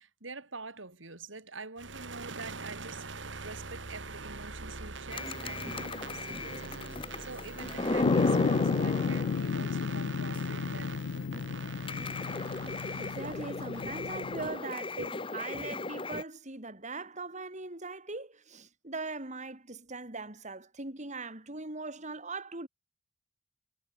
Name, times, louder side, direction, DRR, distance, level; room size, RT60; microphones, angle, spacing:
voice 1, 0.0-11.3, right 3 dB, 85° right, 4.0 m, -46 dB
sound 1, 1.8-14.6, right 4 dB, 70° right, 2.7 m, -44 dB
sound 2, 5.1-9.8 10.3-10.4 10.8-10.9 11.2-16.2, left 2 dB, 30° left, 1.2 m, -35 dB
sound 3, 8.0-14.5, left 6 dB, 80° left, 0.4 m, -33 dB
voice 2, 13.0-22.7, right 3 dB, 40° right, 4.5 m, -40 dB
head